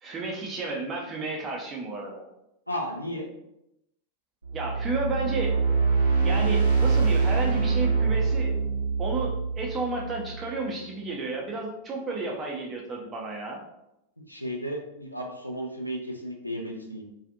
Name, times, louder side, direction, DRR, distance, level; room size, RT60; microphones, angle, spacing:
voice 1, 0.0-2.2 4.5-5.6 6.2-8.6 9.0-13.6, right 3 dB, 25° right, -1 dB, 0.6 m, -32 dB
voice 2, 2.7-3.3 14.3-17.0, equal, 90° left, 0 dB, 0.4 m, -34 dB
sound 1, 4.4-10.6, right 4 dB, 80° right, 0.5 m, -24 dB
2.5 x 2.4 x 2.5 m, 0.84 s
figure-of-eight pair, 90°, 0 cm